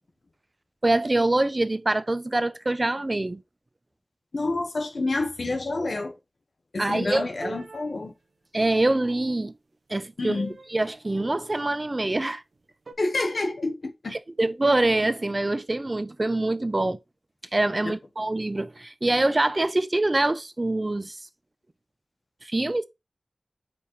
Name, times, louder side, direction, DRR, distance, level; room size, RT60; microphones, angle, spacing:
voice 1, 0.8-3.4 6.8-7.3 8.5-9.5 9.9-10.4 10.7-12.4 14.1-17.0 17.5-21.2 22.4-22.8, right 2 dB, 35° right, 0.5 m, -24 dB
voice 2, 4.3-6.1 6.7-8.1 10.2-10.5 13.0-14.2 17.8-17.9, left 2 dB, 85° left, 1.2 m, -28 dB
sound 1, 6.9-7.9 10.3-10.7 11.1-11.6 12.9-13.0, right 2 dB, 90° right, 0.8 m, -41 dB
5.2 x 4.2 x 4.7 m
wide cardioid pair, 70°, 0 cm